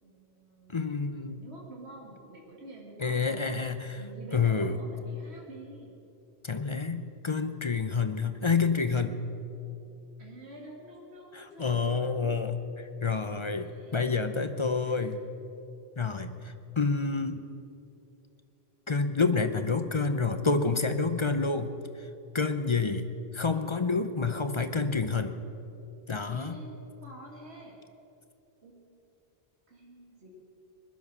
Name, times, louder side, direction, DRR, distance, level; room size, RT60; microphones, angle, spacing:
voice 1, 0.0-0.8 1.3-3.3 4.0-5.9 10.2-12.7 13.0-15.2 22.6-22.7 26.3-27.8 28.6-28.8 29.7-30.3, right 1 dB, 85° right, -2 dB, 2.5 m, -49 dB
voice 2, 0.7-1.4 3.0-4.0 4.3-4.8 6.4-9.3 11.3-12.6 13.0-15.2 16.0-17.4 18.9-22.1 22.3-23.0 23.3-25.4 26.1-26.6, left 4 dB, 35° left, 9 dB, 0.6 m, -28 dB
20.5 x 11.5 x 6.2 m, 2.8 s
omnidirectional pair, 1.1 m